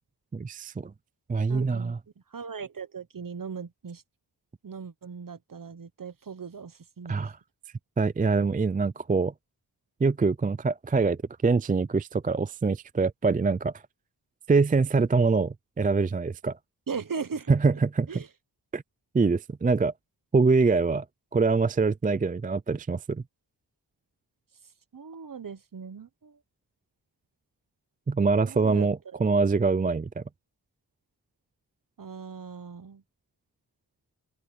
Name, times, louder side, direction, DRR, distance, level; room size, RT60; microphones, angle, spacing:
voice 1, 0.3-0.9 1.3-2.0 7.1-7.4 8.0-9.3 10.0-13.7 14.5-16.6 17.5-18.2 18.7-18.8 19.1-19.9 20.3-21.0 21.3-23.2 28.1-30.2, right 4 dB, 20° right, 0.4 m, -24 dB
voice 2, 1.5-1.9 2.3-4.0 4.6-7.3 16.9-17.5 18.1-18.3 24.9-26.4 28.4-29.2 32.0-33.0, right 5 dB, 50° right, 1.2 m, -38 dB
wide cardioid pair, 95°, 42 cm